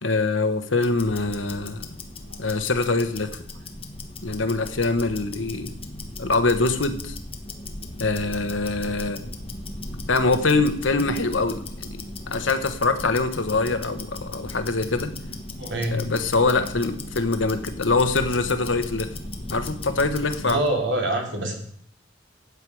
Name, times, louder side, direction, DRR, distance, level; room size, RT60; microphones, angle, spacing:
voice 1, 0.0-2.0 2.4-3.4 4.2-5.7 6.2-7.2 8.0-9.2 10.1-15.1 15.9-19.1 19.5-20.6, left 3 dB, 90° left, 10 dB, 1.2 m, -24 dB
Tick-tock, 0.7-20.7, left 2 dB, 30° left, 1.3 m, -37 dB
voice 2, 15.5-16.0 20.4-21.5, right 1 dB, 65° right, 2 dB, 2.9 m, -25 dB
13.0 x 8.7 x 4.8 m, 0.65 s
head